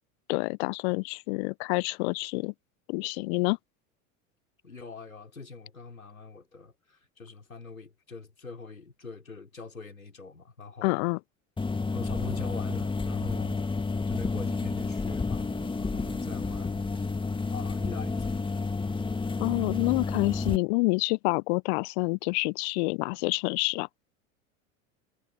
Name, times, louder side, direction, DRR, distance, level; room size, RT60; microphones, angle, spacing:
voice 1, 0.3-2.5 2.9-3.6 10.8-11.2 19.4-23.9, left 30 dB, 50° left, 0.9 m, -28 dB
voice 2, 4.6-11.1 11.9-13.6 14.1-17.1 17.5-18.4, left 4 dB, 90° left, 6.1 m, -44 dB
sound 1, 11.6-20.6, left 3 dB, 10° left, 2.2 m, -30 dB
figure-of-eight pair, 80°, 41 cm